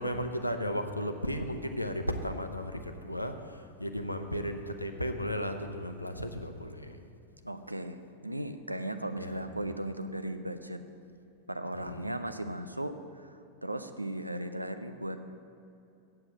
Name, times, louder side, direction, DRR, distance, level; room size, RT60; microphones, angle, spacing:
voice 1, 0.0-7.0 9.2-9.5 11.7-12.2, equal, 90° left, 6 dB, 0.6 m, -35 dB
voice 2, 7.4-10.8 11.5-15.3, right 1 dB, 85° right, 9 dB, 0.5 m, -37 dB
7.8 x 7.8 x 7.3 m, 2.6 s
figure-of-eight pair, 90°, 0 cm